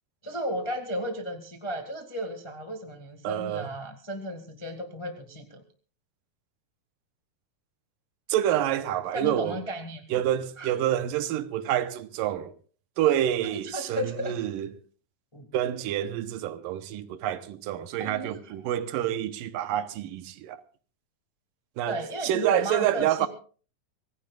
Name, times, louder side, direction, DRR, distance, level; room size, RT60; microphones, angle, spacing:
voice 1, 0.2-5.6 9.1-10.0 10.6-10.7 13.5-14.3 15.3-15.5 18.0-18.4 21.9-23.3, right 1 dB, 30° left, 0.5 m, -34 dB
voice 2, 3.2-3.7 8.3-9.6 10.1-12.5 13.0-14.7 15.5-20.6 21.8-22.0 22.2-23.3, right 11 dB, 80° right, 2.5 m, -28 dB
25.0 x 17.0 x 2.4 m
omnidirectional pair, 4.0 m